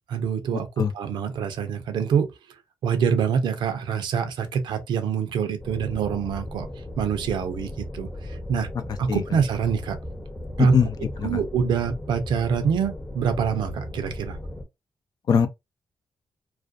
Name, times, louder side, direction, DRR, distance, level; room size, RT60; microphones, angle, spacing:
voice 1, 0.1-0.7 0.9-2.3 2.8-6.7 7.0-8.7 9.0-10.0 10.6-10.8 11.2-14.4, right 6 dB, 80° right, 0.6 m, -25 dB
sound 1, 5.6-14.6, left 1 dB, 20° left, 0.8 m, -37 dB
voice 2, 10.6-11.4 15.3-15.5, left 6 dB, 60° left, 0.5 m, -21 dB
2.4 x 2.2 x 2.5 m
cardioid pair, 65°, 8 cm